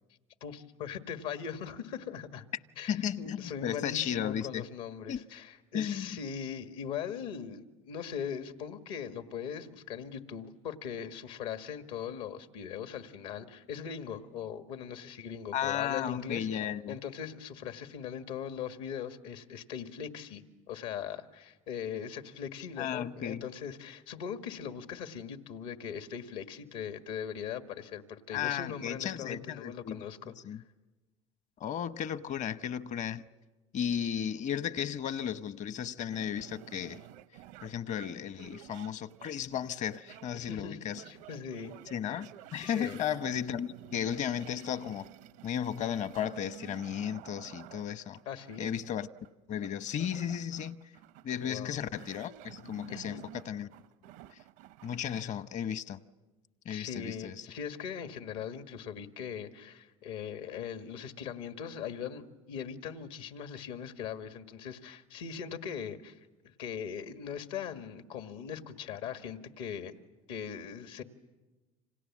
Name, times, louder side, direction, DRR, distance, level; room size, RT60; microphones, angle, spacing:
voice 1, 0.4-2.4 2.8-16.5 16.9-30.4 40.3-41.8 42.6-43.0 48.3-48.7 51.4-51.8 52.9-53.2 56.7-66.2 66.6-69.9 70.3-71.0, left 8 dB, 80° left, 1.9 m, -40 dB
voice 2, 2.9-4.6 5.1-5.2 5.7-6.2 15.5-17.0 22.8-23.5 28.3-30.0 30.4-30.6 31.6-33.2 33.7-37.0 37.6-41.0 41.9-45.1 45.4-48.2 48.6-49.1 49.5-50.8 51.2-53.7 54.8-56.0 56.6-57.5, left 9 dB, 50° left, 1.0 m, -34 dB
sound 1, 36.1-55.2, right 14 dB, 80° right, 0.8 m, -52 dB
29.0 x 26.5 x 7.5 m
supercardioid pair, 90°, 16 cm